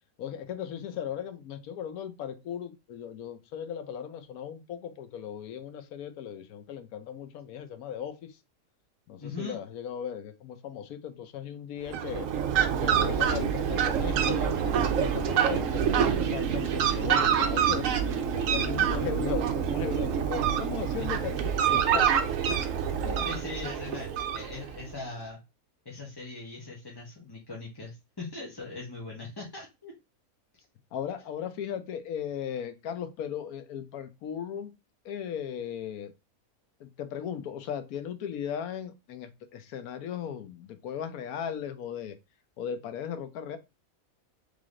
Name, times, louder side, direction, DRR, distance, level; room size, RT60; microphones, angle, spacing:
voice 1, 0.2-8.4 9.1-12.3 12.8-21.4 21.7-22.1 23.0-23.3 30.9-34.7 35.0-36.1 36.8-42.2 42.6-43.6, left 8 dB, 80° left, 10 dB, 1.2 m, -37 dB
voice 2, 9.2-9.6 21.0-21.1 23.2-24.1 24.3-25.4 25.8-29.9, left 3 dB, 20° left, -3 dB, 0.9 m, -40 dB
Fowl, 11.8-24.9, right 8 dB, 70° right, 1.0 m, -26 dB
3.8 x 3.4 x 3.6 m, 0.25 s
omnidirectional pair, 1.5 m